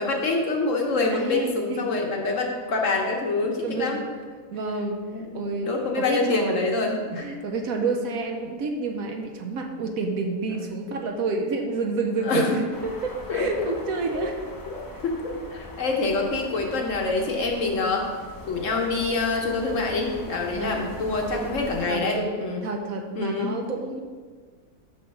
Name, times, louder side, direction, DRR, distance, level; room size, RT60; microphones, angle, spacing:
voice 1, 0.0-4.0 5.1-5.3 5.6-7.3 12.2-12.6 13.3-13.7 14.1-14.3 14.7-18.1 18.5-22.6 23.2-23.5, left 3 dB, 55° left, 1 dB, 1.1 m, -26 dB
voice 2, 1.1-1.9 3.6-4.0 4.5-5.0 5.3-6.7 7.2-14.4 20.5-21.5 21.9-24.0, right 3 dB, 65° right, 4 dB, 1.0 m, -29 dB
sound 1, 12.7-21.9, left 2 dB, 25° left, 0.4 m, -41 dB
6.0 x 5.4 x 5.2 m, 1.5 s
omnidirectional pair, 1.7 m